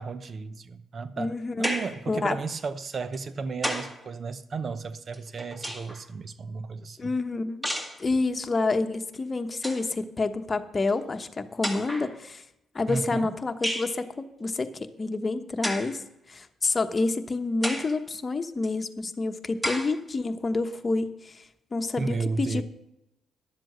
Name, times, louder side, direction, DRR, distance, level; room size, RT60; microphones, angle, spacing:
voice 1, 0.0-7.1 12.9-13.3 22.0-22.6, right 4 dB, 50° right, 14 dB, 0.8 m, -33 dB
voice 2, 1.2-1.7 2.1-2.4 7.0-7.7 8.0-12.4 12.7-16.0 16.3-21.4 21.7-22.6, left 3 dB, 35° left, 7 dB, 1.1 m, -28 dB
sound 1, 1.6-2.0 3.1-4.0 5.1-6.0 7.6-8.0 9.1-9.2 9.5-9.9 10.9-11.0 11.6-12.1 13.6-14.0 15.6-16.0 16.6-16.7 17.6-18.0 18.6-18.7 19.6-20.0, equal, 10° right, 1.9 m, -32 dB
11.0 x 7.6 x 6.6 m, 0.87 s
hypercardioid pair, 50°, 0 cm